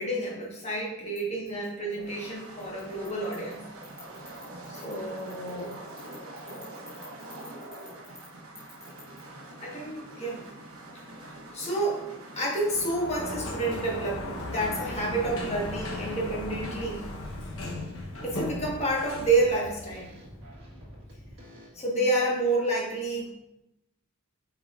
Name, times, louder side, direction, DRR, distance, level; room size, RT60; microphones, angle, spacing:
voice 1, 0.0-3.7 4.7-5.7 9.6-10.4 11.1-11.3 11.5-12.1 12.3-17.0 18.2-20.1 21.7-23.3, right 2 dB, 30° left, -3 dB, 1.5 m, -29 dB
sound 1, 1.8-12.9, right 1 dB, 80° right, 1.1 m, -45 dB
voice 2, 6.1-6.9 7.2-8.2 9.5-9.6 9.8-10.3 13.7-13.9 20.3-20.4 20.8-20.9 21.4-21.5, left 1 dB, 5° right, -8 dB, 1.0 m, -51 dB
Sliding door, 12.6-20.4, left 1 dB, 70° left, 1.1 m, -37 dB
sound 2, 14.8-15.1 15.4-21.7, equal, 55° right, 1.7 m, -48 dB
8.4 x 5.1 x 2.5 m, 0.90 s
head